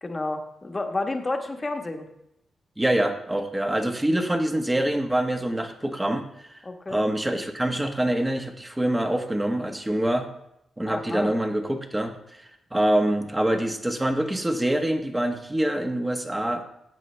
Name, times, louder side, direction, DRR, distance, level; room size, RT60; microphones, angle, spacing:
voice 1, 0.0-2.1 6.6-7.0 10.9-11.4, left 2 dB, 25° left, 4 dB, 1.2 m, -30 dB
voice 2, 2.8-6.6 6.9-10.3 10.8-16.6, right 1 dB, 10° right, 5 dB, 1.1 m, -25 dB
13.5 x 8.4 x 3.3 m, 0.80 s
cardioid pair, 100°, 0 cm